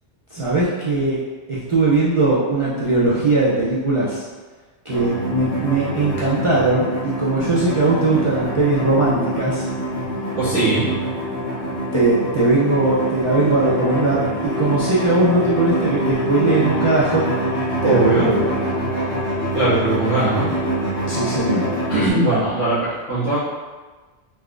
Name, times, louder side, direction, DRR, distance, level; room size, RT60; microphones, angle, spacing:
voice 1, 0.3-1.2 1.5-4.2 4.9-9.7 11.9-17.2 17.8-18.5 21.1-21.8, right 2 dB, 40° right, -9 dB, 0.5 m, -19 dB
sound 1, 4.9-22.1, equal, 60° left, 1.1 m, -25 dB
voice 2, 10.4-10.9 17.8-18.3 19.5-20.5 21.9-23.4, right 2 dB, 80° left, -15 dB, 1.5 m, -19 dB
3.7 x 2.7 x 2.4 m, 1.3 s
omnidirectional pair, 1.2 m